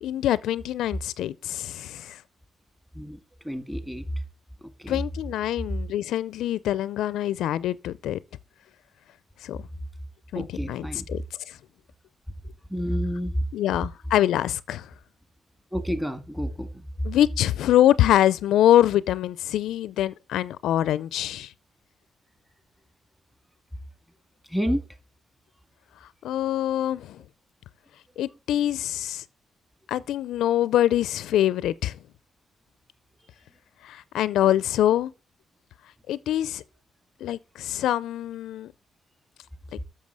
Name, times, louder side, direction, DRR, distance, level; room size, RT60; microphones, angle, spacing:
voice 1, 0.0-2.2 4.9-8.2 9.4-9.6 10.3-11.6 13.5-14.9 17.0-21.5 26.2-27.2 28.2-29.2 29.9-32.0 33.8-35.1 36.1-36.6 37.2-38.7 39.7-39.8, left 12 dB, 80° left, 0.4 m, -24 dB
voice 2, 3.4-4.0 4.6-5.0 10.4-11.1 12.7-13.4 15.7-16.7 24.5-24.8 28.2-28.3, equal, 5° right, 1.8 m, -29 dB
7.4 x 6.5 x 7.7 m
cardioid pair, 90°, 0 cm